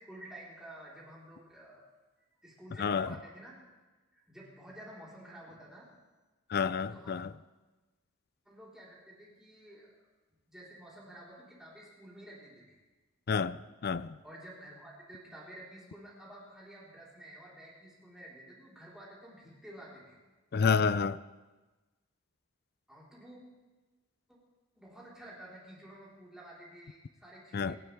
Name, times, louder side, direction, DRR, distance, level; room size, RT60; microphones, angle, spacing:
voice 1, 0.0-1.8 2.4-3.6 4.1-5.9 6.8-7.1 8.4-9.9 10.5-12.8 14.2-20.2 22.9-23.4 24.3-24.4 24.7-27.8, right 1 dB, 5° right, 4.3 m, -51 dB
voice 2, 2.8-3.1 6.5-7.3 13.3-14.2 20.5-21.2 27.5-27.8, left 5 dB, 50° left, 0.4 m, -29 dB
29.0 x 12.0 x 3.5 m
head